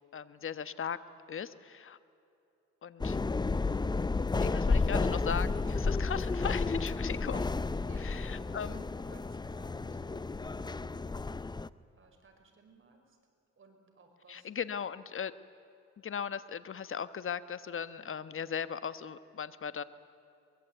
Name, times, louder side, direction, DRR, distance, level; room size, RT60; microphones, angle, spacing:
voice 1, 0.1-1.0 1.3-2.0 2.8-3.2 4.4-7.5 8.0-8.8 14.3-15.3 16.0-19.8, left 7 dB, 45° left, 14 dB, 1.2 m, -38 dB
sound 1, 3.0-11.7, left 3 dB, 15° left, 0.6 m, -32 dB
voice 2, 7.8-11.6 11.9-13.2 13.6-14.7, right 3 dB, 40° right, 3 dB, 5.5 m, -60 dB
23.5 x 22.0 x 9.2 m, 2.8 s
cardioid pair, 90°, 30 cm